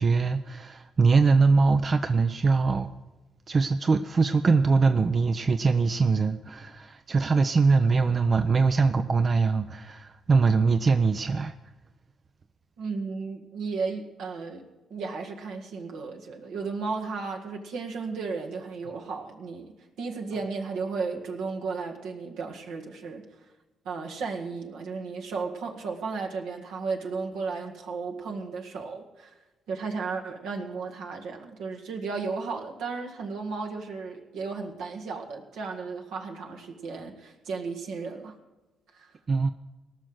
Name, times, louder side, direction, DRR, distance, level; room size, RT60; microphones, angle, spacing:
voice 1, 0.0-2.9 3.5-11.5 39.3-39.5, right 4 dB, 45° right, 9 dB, 0.6 m, -22 dB
voice 2, 12.8-23.2 23.9-29.3 29.7-38.4 38.9-39.1, right 4 dB, 80° right, 2 dB, 1.9 m, -34 dB
18.0 x 6.3 x 8.0 m, 1.1 s
hypercardioid pair, 50°, 0 cm